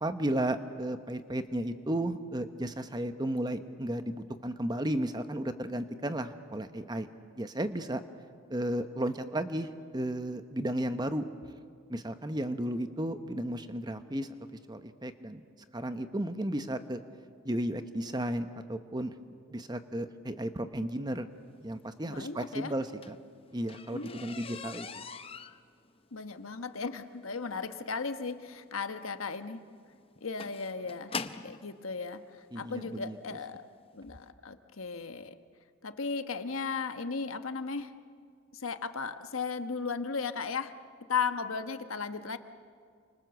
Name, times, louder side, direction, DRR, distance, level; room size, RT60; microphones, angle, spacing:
voice 1, 0.0-7.1 7.4-8.0 8.5-11.3 11.9-14.3 14.7-15.4 15.7-17.0 17.4-19.1 19.5-21.3 21.6-23.2 23.5-25.0 32.5-33.2, right 1 dB, 20° right, 9 dB, 1.0 m, -34 dB
voice 2, 22.1-22.7 23.9-24.5 26.1-29.6 30.2-31.1 31.4-32.2 32.5-33.7 33.9-35.4 35.8-37.9 38.5-40.7 41.1-42.4, left 5 dB, 85° left, 9 dB, 1.2 m, -36 dB
sound 1, 22.7-31.6 32.5-32.6 33.2-33.4 33.7-33.8 34.1-34.2, left 5 dB, 25° left, 0.7 m, -43 dB
29.5 x 26.0 x 7.0 m, 2.2 s
head